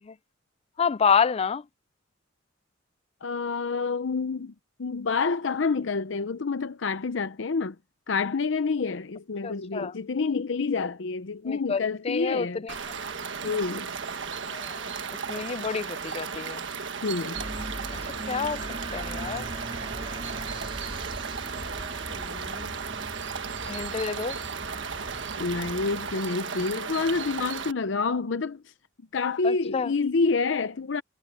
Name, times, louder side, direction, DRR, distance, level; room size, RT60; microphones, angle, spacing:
voice 1, 0.8-1.6 9.4-9.9 11.4-12.8 14.5-14.8 15.3-16.6 17.9-18.0 18.3-18.6 18.9-19.5 22.1-22.8 23.7-24.3 29.4-29.9, left 6 dB, 30° left, 0.4 m, -28 dB
voice 2, 3.2-4.5 4.8-7.7 8.1-12.6 13.4-13.9 17.0-17.4 25.4-28.6 29.1-31.0, left 4 dB, 70° left, 0.7 m, -28 dB
sound 1, 12.7-27.7, right 6 dB, 70° right, 1.4 m, -35 dB
sound 2, 17.3-26.1, right 1 dB, 30° right, 2.9 m, -40 dB
head